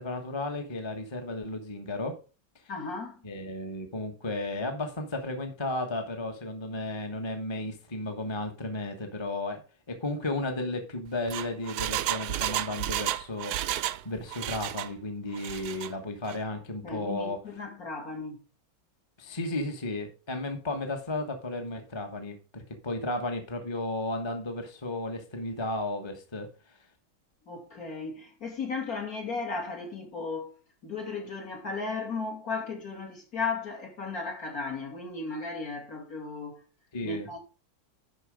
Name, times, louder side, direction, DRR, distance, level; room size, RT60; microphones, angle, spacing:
voice 1, 0.0-2.2 3.2-9.6 9.9-17.4 19.2-26.5 36.9-37.3, left 2 dB, 15° left, 1.2 m, -34 dB
voice 2, 2.7-3.2 16.8-18.4 27.5-30.6 30.8-36.6 37.0-37.4, left 4 dB, 55° left, 3.2 m, -35 dB
Engine, 11.1-14.0 14.3-14.9 15.3-15.9 16.3-16.4, right 13 dB, 75° right, 1.1 m, -32 dB
11.5 x 4.7 x 5.1 m
omnidirectional pair, 1.9 m